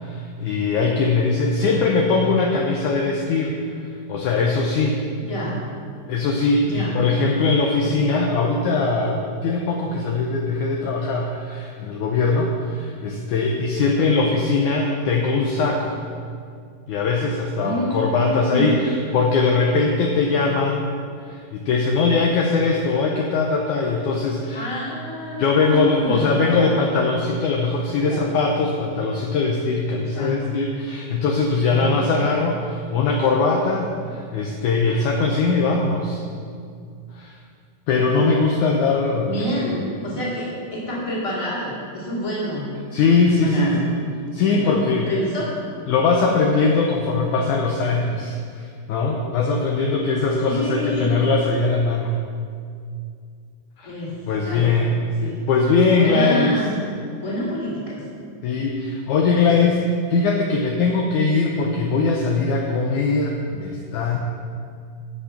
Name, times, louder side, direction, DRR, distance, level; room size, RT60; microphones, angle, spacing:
voice 1, 0.0-5.1 6.1-16.0 16.9-20.9 21.3-24.7 25.4-36.2 37.2-37.4 37.9-39.5 42.9-44.0 44.3-45.1 45.9-52.1 53.8-53.9 54.3-55.0 55.5-56.6 58.4-59.8 60.1-64.2, left 4 dB, 75° left, 0 dB, 1.9 m, -21 dB
voice 2, 17.5-18.6 24.5-26.7 28.0-28.3 30.0-30.4 31.7-32.1 39.2-42.7 43.1-43.8 44.3-44.8 45.1-45.5 50.5-51.1 53.8-54.1 54.5-54.9 55.2-55.4 55.9-56.8 57.2-58.0, left 1 dB, 10° left, -6 dB, 2.0 m, -28 dB
14.5 x 5.3 x 5.8 m, 2.2 s
omnidirectional pair, 4.1 m